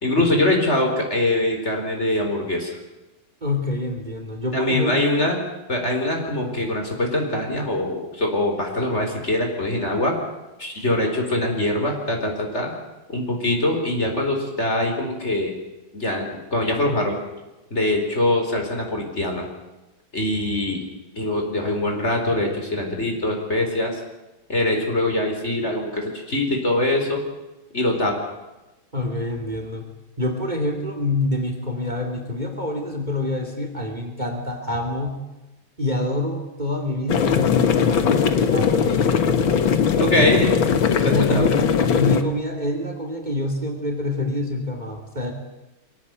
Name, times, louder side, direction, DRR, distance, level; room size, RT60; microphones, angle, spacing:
voice 1, 0.0-2.8 4.5-5.4 5.7-10.2 10.6-12.7 13.1-15.5 15.9-17.2 17.7-19.4 20.1-20.8 21.2-24.0 24.5-27.2 27.7-28.2 40.0-40.5 41.0-41.5, left 1 dB, 35° left, 2 dB, 4.8 m, -23 dB
voice 2, 3.4-5.3 10.7-10.8 28.9-29.9 30.2-35.2 35.8-39.2 40.2-40.4 41.0-41.6 41.9-45.3, left 2 dB, 20° right, 4 dB, 2.8 m, -26 dB
sound 1, 37.1-42.2, left 6 dB, 80° left, 2.2 m, -19 dB
24.0 x 17.5 x 9.5 m, 1.0 s
omnidirectional pair, 2.2 m